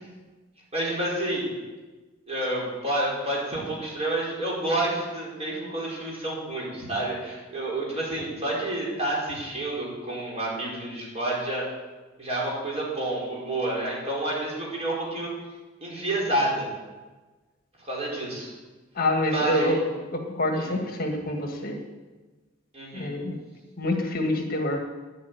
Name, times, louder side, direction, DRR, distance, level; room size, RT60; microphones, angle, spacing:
voice 1, 0.7-1.5 2.3-11.7 12.2-15.3 15.8-16.7 17.8-18.5 19.2-19.8 20.5-20.7 22.7-23.1, right 1 dB, 30° right, -4 dB, 5.1 m, -29 dB
voice 2, 18.9-19.8 20.1-21.8 22.9-23.4 23.8-24.8, left 1 dB, 45° left, 3 dB, 1.7 m, -26 dB
11.0 x 8.9 x 9.4 m, 1.2 s
head